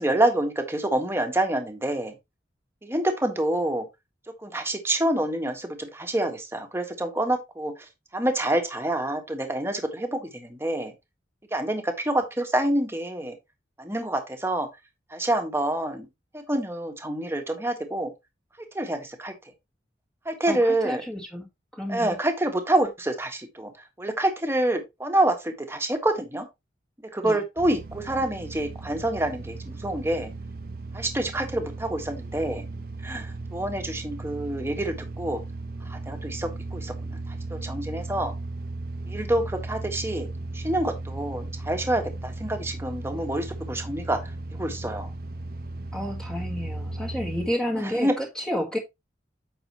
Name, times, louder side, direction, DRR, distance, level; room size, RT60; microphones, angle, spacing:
voice 1, 0.0-2.1 2.8-3.8 4.4-7.7 8.1-10.9 11.5-13.3 13.8-14.7 15.1-16.1 16.3-18.1 18.7-19.3 20.2-21.0 21.9-23.7 24.0-26.5 27.1-30.3 30.9-32.6 33.0-35.4 35.8-38.3 39.1-40.3 40.5-44.2 44.6-45.1 47.8-48.2, right 1 dB, 15° right, 1.6 m, -27 dB
voice 2, 20.5-21.5 21.7-22.2 27.2-27.4 45.9-48.8, equal, 5° left, 1.6 m, -30 dB
sound 1, 27.6-47.5, right 2 dB, 55° right, 1.1 m, -36 dB
8.9 x 6.2 x 3.1 m
head